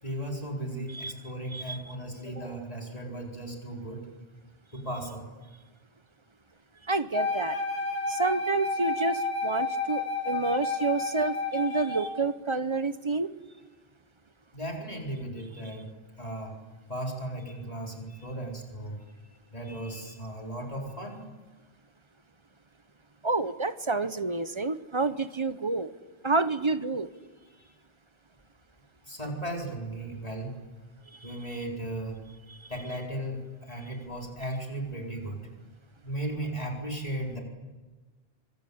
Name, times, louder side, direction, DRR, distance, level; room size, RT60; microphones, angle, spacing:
voice 1, 0.0-4.1 4.7-5.3 14.5-15.9 16.2-16.5 16.9-19.0 19.5-21.2 27.4-27.7 29.1-30.5 31.2-32.2 32.7-35.4 36.0-37.4, right 1 dB, 35° left, 0 dB, 4.5 m, -36 dB
voice 2, 6.9-7.6 8.1-13.3 23.2-25.9 26.2-27.1 31.2-31.3 32.5-32.6, right 3 dB, 30° right, 12 dB, 0.9 m, -29 dB
Wind instrument woodwind instrument, 7.1-12.2, left 3 dB, 65° left, 4.7 m, -31 dB
25.0 x 22.5 x 8.7 m, 1.3 s
omnidirectional pair, 1.1 m